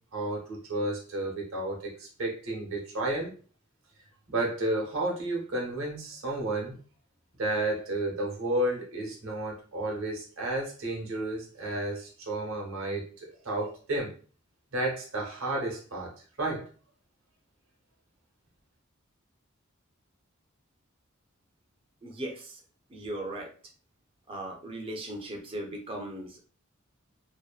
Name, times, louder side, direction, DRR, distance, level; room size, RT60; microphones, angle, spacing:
voice 1, 0.1-3.3 4.3-6.8 7.4-14.2 14.7-16.1 16.4-16.7, right 1 dB, 75° right, -1 dB, 0.9 m, -32 dB
voice 2, 22.0-22.6 22.9-23.5 24.3-26.4, right 1 dB, 25° right, 2 dB, 0.5 m, -38 dB
2.7 x 2.1 x 2.3 m, 0.39 s
head